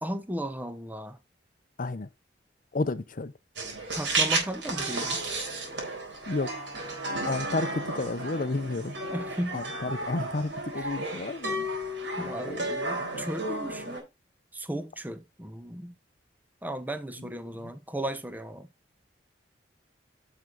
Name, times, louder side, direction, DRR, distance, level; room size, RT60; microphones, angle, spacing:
voice 1, 0.0-1.2 3.9-5.4 9.1-9.6 10.7-10.9 12.2-14.1 14.5-15.9 16.6-18.7, right 1 dB, 10° right, 0.9 m, -35 dB
voice 2, 2.7-3.3 6.3-6.5 7.2-8.9 9.5-11.7 12.2-12.6 13.1-13.3, left 3 dB, 50° left, 0.6 m, -31 dB
sound 1, 3.6-14.0, right 2 dB, 90° right, 3.9 m, -33 dB
9.6 x 6.1 x 3.9 m
head